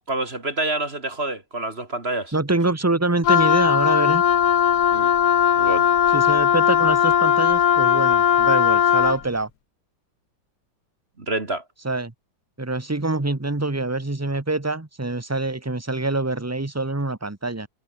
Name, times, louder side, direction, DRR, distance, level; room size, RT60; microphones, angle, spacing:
voice 1, 0.1-2.3 4.9-5.1 5.6-5.9 11.2-11.6, right 2 dB, 30° right, 2.8 m, -27 dB
voice 2, 2.3-4.2 6.1-9.5 11.8-12.1 12.6-17.7, right 2 dB, 10° right, 1.1 m, -25 dB
Wind instrument woodwind instrument, 3.2-9.2, left 9 dB, 60° left, 1.6 m, -18 dB
omnidirectional pair, 2.0 m